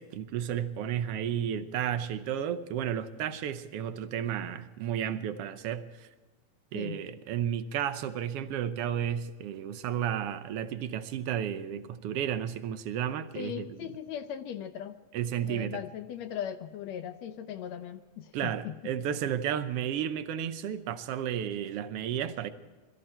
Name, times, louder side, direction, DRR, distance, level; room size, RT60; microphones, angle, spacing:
voice 1, 0.0-6.1 6.7-13.7 15.1-15.8 18.3-22.5, right 9 dB, 70° right, 11 dB, 1.5 m, -32 dB
voice 2, 13.4-15.0 15.4-18.9, left 9 dB, 70° left, 9 dB, 1.8 m, -39 dB
21.5 x 14.5 x 4.4 m, 1.2 s
omnidirectional pair, 3.5 m